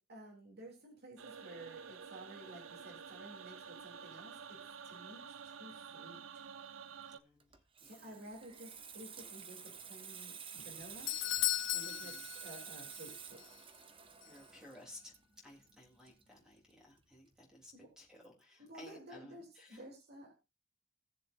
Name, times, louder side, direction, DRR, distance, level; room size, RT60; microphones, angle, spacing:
voice 1, 0.0-4.6 4.8-6.2 7.8-10.3 10.6-11.1 11.7-13.4 17.7-17.9 18.6-20.3, right 1 dB, 55° right, 0 dB, 3.1 m, -53 dB
sound 1, 1.2-7.2, right 6 dB, 80° right, 0.7 m, -50 dB
voice 2, 7.1-7.5 7.8-8.2 11.8-12.2 14.2-15.1 15.4-19.8, left 1 dB, 5° right, -2 dB, 3.4 m, -56 dB
Water tap faucet / Sink (filling or washing), 7.4-16.7 17.0-17.3, right 7 dB, 25° right, 0.9 m, -50 dB
Doorbell, 10.6-13.1 13.4-13.5 14.2-14.3, left 14 dB, 65° left, 0.5 m, -37 dB
18.0 x 7.1 x 2.6 m, 0.27 s
head